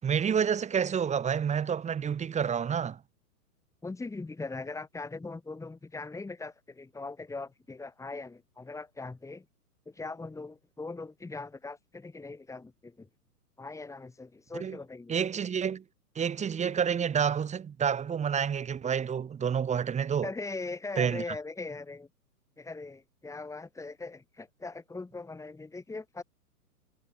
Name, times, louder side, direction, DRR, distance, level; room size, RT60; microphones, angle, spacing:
voice 1, 0.0-3.0 14.6-14.8 15.1-15.8 16.2-20.3 21.0-21.2, right 7 dB, 15° right, 3.9 m, -29 dB
voice 2, 3.8-9.5 9.9-13.1 13.6-15.2 20.2-22.1 22.6-26.2, left 3 dB, 5° left, 7.4 m, -40 dB
hypercardioid pair, 125°, 47 cm